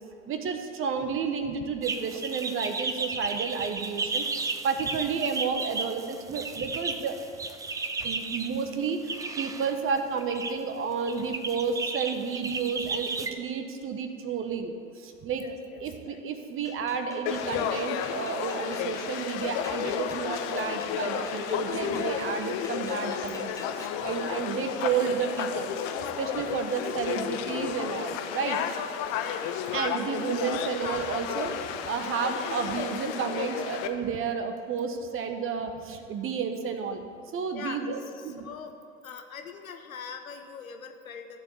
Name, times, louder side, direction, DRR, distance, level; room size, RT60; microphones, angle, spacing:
voice 1, 0.3-4.2 4.6-7.2 8.0-15.5 15.8-23.5 23.8-25.9 26.2-28.6 29.7-37.0 37.3-38.0 38.2-38.5, right 6 dB, 30° right, 6 dB, 1.2 m, -31 dB
sound 1, 1.8-8.5 9.1-9.7 10.2-10.5 11.0-13.3, right 4 dB, 10° right, 0.4 m, -33 dB
voice 2, 15.4-16.2 29.1-29.5 37.5-38.8 39.0-41.4, left 6 dB, 85° left, 6 dB, 1.1 m, -43 dB
sound 2, 16.6-24.0, left 2 dB, 10° left, 0.9 m, -49 dB
Conversation / Crowd, 17.3-33.9, left 8 dB, 50° left, 0.9 m, -32 dB
13.0 x 4.8 x 8.0 m, 2.3 s
hypercardioid pair, 90°, 40 cm